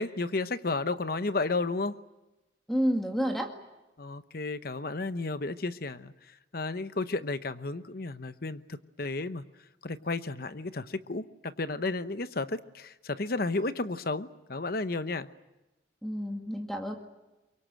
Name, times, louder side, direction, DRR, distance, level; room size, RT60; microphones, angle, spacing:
voice 1, 0.0-2.0 4.0-6.1 6.5-9.4 9.8-15.3, left 3 dB, 55° left, 12 dB, 0.9 m, -32 dB
voice 2, 2.7-3.5 16.0-16.9, equal, ahead, 3 dB, 2.0 m, -29 dB
24.5 x 23.5 x 9.1 m, 1.0 s
head